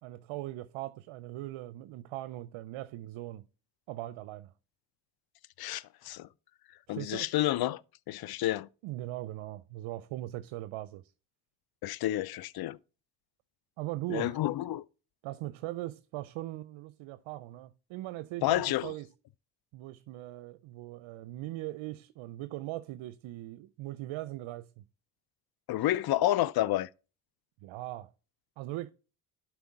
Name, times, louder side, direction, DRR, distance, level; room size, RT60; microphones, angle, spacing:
voice 1, 0.0-3.4 3.9-4.5 6.9-7.3 8.8-11.0 13.8-14.4 15.2-19.1 19.7-24.8 27.6-28.1 28.6-28.9, right 16 dB, 70° right, 0.6 m, -40 dB
voice 2, 5.6-6.3 6.9-7.8 8.1-8.7 11.8-12.8 14.1-14.8 18.4-18.9 25.7-26.9, left 14 dB, 50° left, 0.5 m, -29 dB
11.5 x 4.7 x 3.6 m
hypercardioid pair, 50°, 50 cm